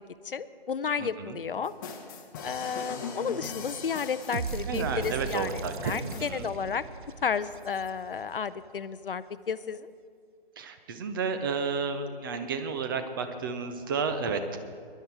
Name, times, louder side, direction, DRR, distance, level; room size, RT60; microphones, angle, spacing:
voice 1, 0.0-1.7 2.4-6.8 7.2-9.9, left 6 dB, 65° left, 15 dB, 0.7 m, -32 dB
voice 2, 1.0-1.4 4.7-6.5 10.6-14.6, right 5 dB, 20° right, 8 dB, 0.7 m, -32 dB
sound 1, 1.6-6.3, left 5 dB, 20° left, 1.0 m, -41 dB
sound 2, 4.3-8.4, right 6 dB, 55° right, 0.5 m, -38 dB
20.0 x 11.5 x 4.6 m, 2.2 s
figure-of-eight pair, 140°, 30 cm